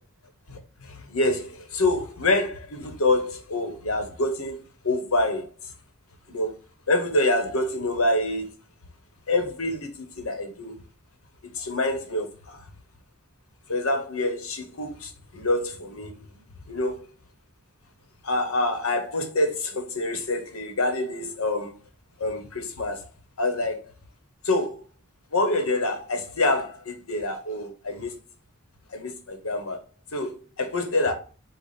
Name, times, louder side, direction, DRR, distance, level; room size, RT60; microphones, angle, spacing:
voice 1, 0.5-4.6 4.8-5.7 6.3-6.5 6.9-8.5 9.3-10.8 11.5-12.7 13.7-17.0 18.2-21.7 22.2-23.1 23.4-23.9 24.4-24.8 25.3-28.1 28.9-29.8 30.1-31.1, left 2 dB, 70° left, 1.1 m, -26 dB
5.0 x 2.4 x 4.1 m
head